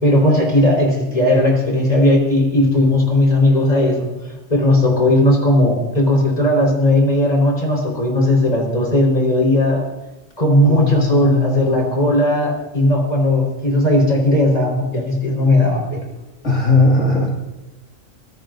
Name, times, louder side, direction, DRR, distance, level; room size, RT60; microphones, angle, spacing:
voice 1, 0.0-4.1 4.5-9.8 10.4-16.1, left 1 dB, 30° left, -1 dB, 4.6 m, -16 dB
voice 2, 10.6-11.8 16.4-17.4, left 3 dB, 65° left, -3 dB, 2.7 m, -18 dB
24.0 x 17.5 x 2.6 m, 1.1 s
omnidirectional pair, 1.4 m